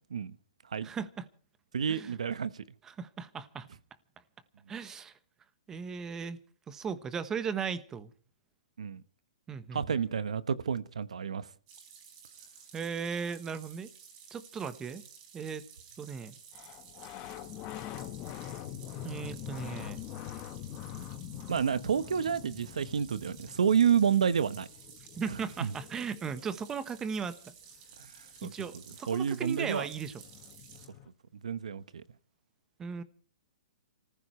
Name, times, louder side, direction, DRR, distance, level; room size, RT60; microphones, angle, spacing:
voice 1, 0.8-1.3 1.9-2.2 2.8-3.7 4.7-5.1 5.7-6.4 6.7-8.1 9.5-10.0 12.7-13.9 14.3-15.0 15.3-15.6 16.0-16.4 19.0-20.0 25.2-27.5 28.4-30.2 32.8-33.0, right 6 dB, 15° right, 1.1 m, -37 dB
voice 2, 1.7-2.5 8.8-9.0 9.7-11.5 21.5-24.7 25.6-25.7 28.4-28.5 29.1-29.9 31.4-32.0, right 7 dB, 85° right, 1.1 m, -29 dB
sound 1, 11.7-30.9, right 6 dB, 35° right, 4.8 m, -53 dB
sound 2, 16.5-26.9 29.0-29.1 29.3-31.1, left 12 dB, 30° left, 1.2 m, -44 dB
28.5 x 15.0 x 3.2 m
hypercardioid pair, 150°, 3 cm